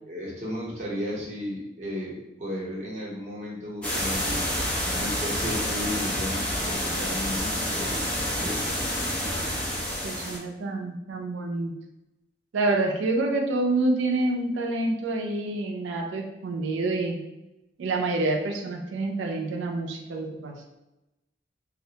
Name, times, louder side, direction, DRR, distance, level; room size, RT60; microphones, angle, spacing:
voice 1, 0.0-4.5 4.9-8.1 8.3-8.7, left 1 dB, 40° right, -6 dB, 0.8 m, -34 dB
sound 1, 3.8-10.4, equal, 5° left, 0.5 m, -28 dB
voice 2, 10.0-11.8 12.5-17.2 17.8-20.6, right 2 dB, 85° right, 2 dB, 0.4 m, -27 dB
2.3 x 2.1 x 2.7 m, 0.96 s
head